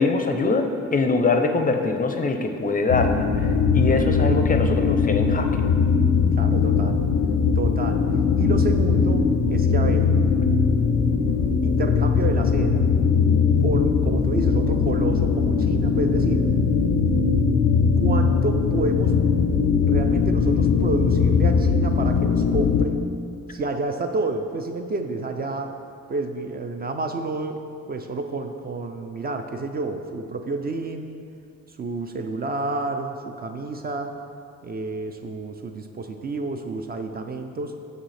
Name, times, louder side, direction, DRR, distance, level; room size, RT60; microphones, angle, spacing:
voice 1, 0.0-3.3 3.7-5.5, left 3 dB, 30° left, 5 dB, 0.4 m, -23 dB
sound 1, 2.9-22.9, left 5 dB, 85° left, 0.5 m, -20 dB
voice 2, 6.4-7.0 7.6-10.1 10.9-12.8 13.6-16.5 18.0-19.2 19.8-23.0 23.5-25.7 26.1-27.6 27.9-31.3 31.7-34.1 34.6-37.8, right 3 dB, 30° right, 5 dB, 0.4 m, -30 dB
6.4 x 6.2 x 3.2 m, 2.4 s
cardioid pair, 90°, 30 cm